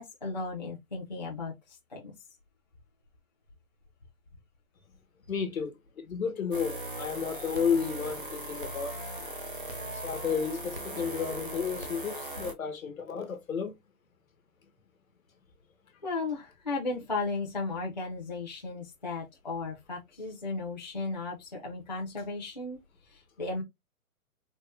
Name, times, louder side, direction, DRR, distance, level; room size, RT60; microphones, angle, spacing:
voice 1, 0.0-2.1 16.0-23.6, left 3 dB, 30° left, 0.6 m, -35 dB
voice 2, 5.3-9.0 9.9-13.7, left 6 dB, 65° left, 1.3 m, -32 dB
sound 1, 6.5-12.5, right 1 dB, 40° right, 0.4 m, -39 dB
4.0 x 2.1 x 3.2 m
hypercardioid pair, 180°, 44 cm